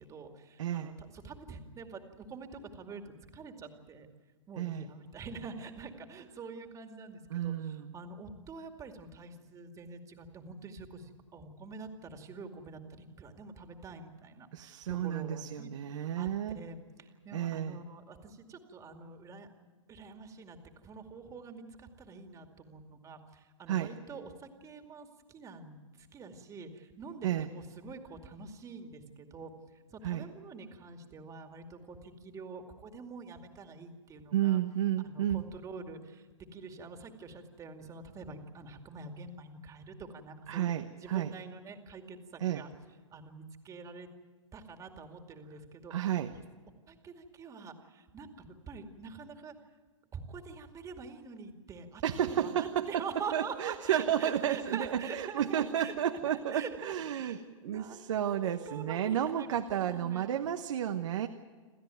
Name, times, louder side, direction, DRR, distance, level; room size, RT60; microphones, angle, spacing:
voice 1, 0.0-4.1 4.5-16.3 16.5-19.5 19.9-34.6 35.0-36.3 36.5-40.7 41.0-42.7 43.1-44.1 44.5-46.4 46.9-49.5 50.1-55.9 56.3-60.3, right 4 dB, 20° right, 5 dB, 2.4 m, -46 dB
voice 2, 0.6-0.9 4.6-4.9 7.3-7.9 14.5-16.6 17.3-17.8 23.7-23.9 27.2-27.5 30.0-30.2 34.3-35.5 40.5-41.3 42.4-42.6 45.9-46.3 52.0-53.0 53.3-61.3, right 10 dB, 70° right, 6 dB, 1.2 m, -32 dB
28.5 x 13.5 x 9.2 m, 1.4 s
hypercardioid pair, 130°, 17 cm